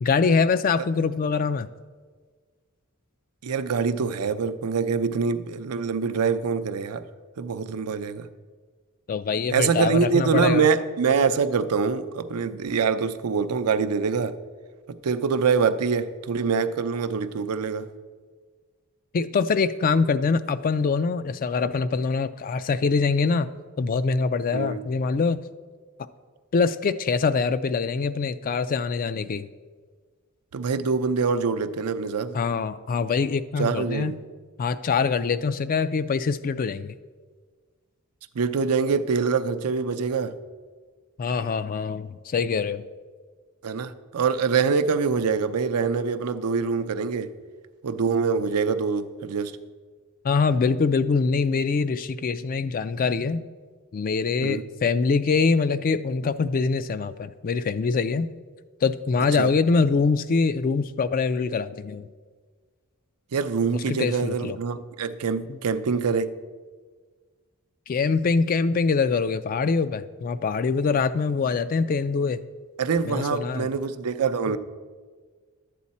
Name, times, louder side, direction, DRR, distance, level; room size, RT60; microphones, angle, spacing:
voice 1, 0.0-1.7 9.1-10.7 19.1-23.5 23.8-25.4 26.5-29.5 32.3-34.2 34.6-36.9 41.2-42.8 50.2-53.5 53.9-58.3 58.8-62.1 63.9-64.6 65.5-65.6 67.9-72.4 73.0-73.7, left 4 dB, 40° left, 13 dB, 0.3 m, -24 dB
voice 2, 3.4-7.0 7.4-8.3 9.5-14.4 14.9-17.9 24.5-24.8 30.5-32.4 33.6-34.2 38.3-40.3 43.6-47.3 47.8-49.6 54.4-54.6 59.4-59.5 63.3-66.3 72.8-74.6, right 5 dB, 85° right, 10 dB, 0.5 m, -25 dB
11.5 x 8.4 x 4.2 m, 1.5 s
head